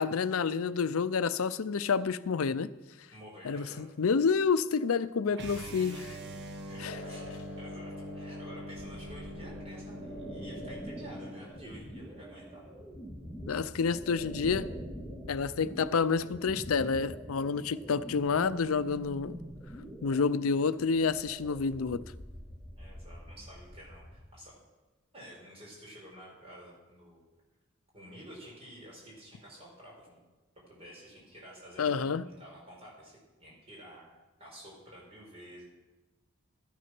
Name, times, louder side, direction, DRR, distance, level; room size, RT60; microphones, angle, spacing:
voice 1, 0.0-2.7 3.4-6.0 6.8-6.9 13.5-14.7 15.3-19.4 20.0-22.0 31.8-32.2, left 5 dB, 85° left, 0.5 m, -29 dB
voice 2, 3.1-3.8 5.3-5.8 6.7-12.8 22.8-24.6 25.1-27.2 27.9-30.2 30.5-34.1 34.4-35.7, equal, 30° right, 4.5 m, -51 dB
sound 1, 5.3-11.5, equal, 55° right, 1.2 m, -43 dB
sound 2, 6.8-13.9, left 3 dB, 60° left, 0.9 m, -51 dB
sound 3, 8.7-24.2, right 1 dB, 10° right, 2.3 m, -45 dB
13.0 x 9.4 x 6.0 m
head